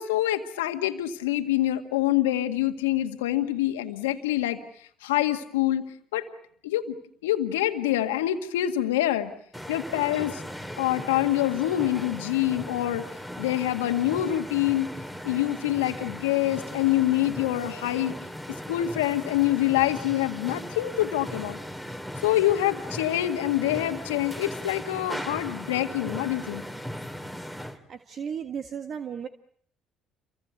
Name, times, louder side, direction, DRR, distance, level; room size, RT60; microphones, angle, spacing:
voice 1, 0.0-4.6 5.0-6.3 6.6-7.0 7.2-9.3 9.7-10.4 10.8-13.0 13.4-14.9 15.2-18.2 18.7-21.6 22.2-26.6, left 13 dB, 90° left, 7 dB, 1.9 m, -26 dB
sound 1, 9.5-27.8, equal, 5° right, 3.3 m, -38 dB
voice 2, 27.9-29.3, right 7 dB, 50° right, 8 dB, 1.7 m, -34 dB
28.5 x 24.5 x 8.1 m, 0.62 s
hypercardioid pair, 65°, 0 cm